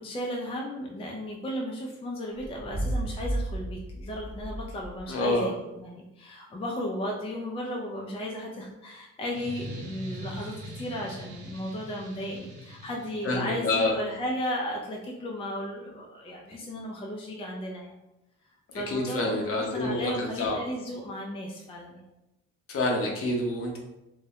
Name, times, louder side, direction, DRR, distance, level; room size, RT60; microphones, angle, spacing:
voice 1, 0.0-18.0 18.7-22.1, equal, 20° left, -1 dB, 0.4 m, -35 dB
sound 1, 2.3-5.2, right 1 dB, 25° right, 0.7 m, -33 dB
voice 2, 5.1-5.5 13.2-13.9 18.9-20.6 22.7-23.8, left 2 dB, 50° left, -1 dB, 0.7 m, -27 dB
sound 2, 9.3-13.8, equal, 90° right, 1.1 m, -42 dB
2.3 x 2.1 x 2.8 m, 0.94 s
cardioid pair, 90°, 30 cm